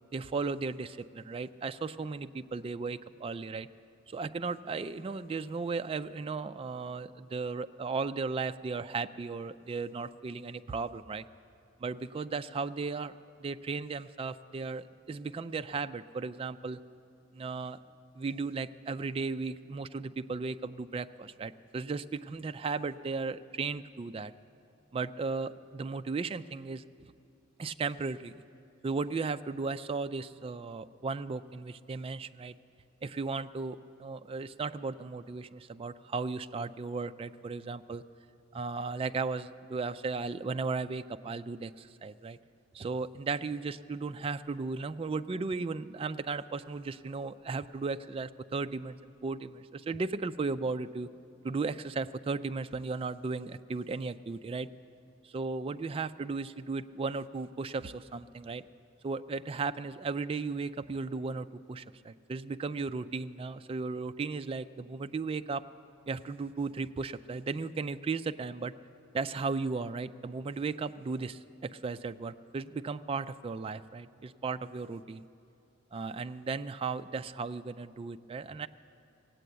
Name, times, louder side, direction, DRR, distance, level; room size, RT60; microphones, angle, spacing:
voice 1, 0.1-3.7 4.1-11.2 11.8-13.1 13.4-16.8 17.3-17.8 18.1-24.3 24.9-27.1 27.6-28.3 28.8-32.6 33.0-38.0 38.5-42.4 42.7-51.1 51.4-54.7 55.2-58.6 59.0-65.6 66.1-68.7 69.1-75.2 75.9-78.7, right 4 dB, 30° right, 11 dB, 0.3 m, -36 dB
17.0 x 8.4 x 7.9 m, 2.6 s
head